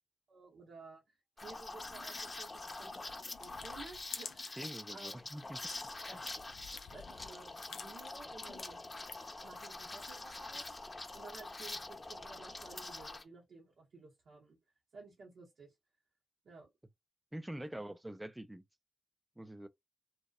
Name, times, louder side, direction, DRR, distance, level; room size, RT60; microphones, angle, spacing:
voice 1, 0.3-1.2 1.4-5.2 6.1-6.4 6.9-8.8 9.4-10.7 11.1-14.6 14.9-15.7 16.4-16.7 17.7-17.8, right 4 dB, 75° right, 0.7 m, -54 dB
Liquid, 1.4-13.2, left 2 dB, 30° left, 0.6 m, -45 dB
sound 1, 1.8-4.8 5.2-9.4, left 6 dB, 75° left, 0.4 m, -52 dB
voice 2, 4.6-5.6 6.0-6.2 17.3-18.6 19.4-19.7, right 1 dB, 15° right, 0.3 m, -45 dB
2.7 x 2.0 x 2.3 m
cardioid pair, 60°, 0 cm